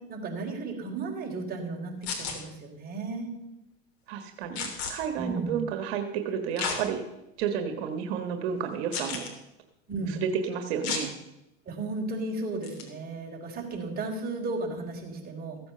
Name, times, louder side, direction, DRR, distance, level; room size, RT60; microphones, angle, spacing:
voice 1, 0.1-3.3 5.2-5.6 9.9-10.2 11.7-15.6, right 3 dB, 30° right, 0 dB, 3.9 m, -34 dB
sound 1, 2.0-2.4 4.6-4.9 6.6-6.8 7.4-7.5 8.9-9.3 10.8-11.1 12.6-12.8, left 6 dB, 75° left, 3.3 m, -32 dB
voice 2, 4.1-7.0 7.4-9.3 10.1-11.1, right 7 dB, 80° right, 6 dB, 1.6 m, -31 dB
15.0 x 8.4 x 6.7 m, 0.91 s
supercardioid pair, 125°, 31 cm